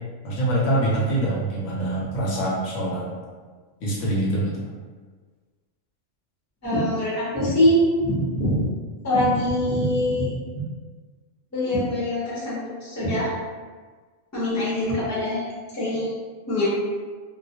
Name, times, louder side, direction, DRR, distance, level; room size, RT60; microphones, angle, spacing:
voice 1, 0.2-3.2 3.8-4.6, right 1 dB, 70° left, -5 dB, 0.9 m, -24 dB
voice 2, 6.6-8.6 9.0-10.3 11.5-13.3 14.3-16.1 16.5-16.7, left 1 dB, 15° left, -8 dB, 0.6 m, -23 dB
2.3 x 2.1 x 2.7 m, 1.5 s
omnidirectional pair, 1.4 m